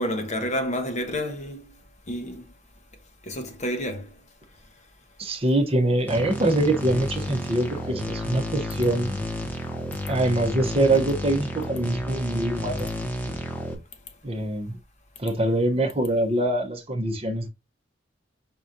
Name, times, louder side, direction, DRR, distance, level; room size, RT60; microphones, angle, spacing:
voice 1, 0.0-1.6 2.1-2.4 3.3-4.1, equal, 40° left, 1.0 m, -29 dB
voice 2, 5.2-9.2 10.1-12.9 14.2-14.8 15.2-17.5, right 1 dB, 30° right, 0.9 m, -24 dB
sound 1, 6.1-13.8, left 1 dB, 10° left, 1.0 m, -31 dB
4.7 x 4.0 x 2.6 m
head